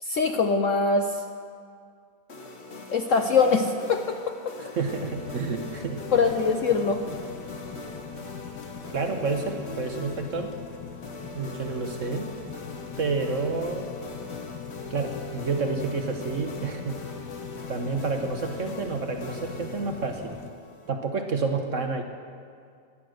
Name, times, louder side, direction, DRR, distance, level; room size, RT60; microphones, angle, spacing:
voice 1, 0.0-1.2 2.9-4.2 6.1-7.0, left 4 dB, 60° left, 5 dB, 0.9 m, -23 dB
sound 1, 2.3-20.9, left 2 dB, 40° left, 1.4 m, -42 dB
voice 2, 4.7-6.0 8.9-10.6 11.3-12.3 13.0-13.9 14.9-16.9 17.7-20.4 20.9-22.0, right 4 dB, 50° right, 5 dB, 1.2 m, -29 dB
sound 2, 4.8-20.5, left 8 dB, 75° left, 1.5 m, -41 dB
18.5 x 11.0 x 6.5 m, 2.2 s
omnidirectional pair, 1.9 m